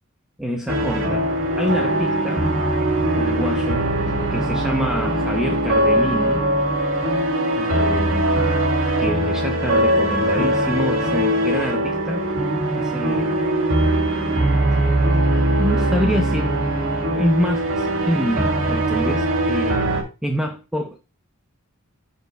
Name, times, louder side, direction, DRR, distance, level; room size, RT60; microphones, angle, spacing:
voice 1, 0.4-2.5 3.1-3.8 4.3-6.5 7.6-8.3 9.0-12.2 12.8-13.4 15.6-16.6 17.1-19.9 20.2-21.0, equal, 5° right, 0.7 m, -26 dB
sound 1, 0.7-20.0, right 1 dB, 70° right, 2.6 m, -21 dB
14.0 x 5.2 x 2.2 m
head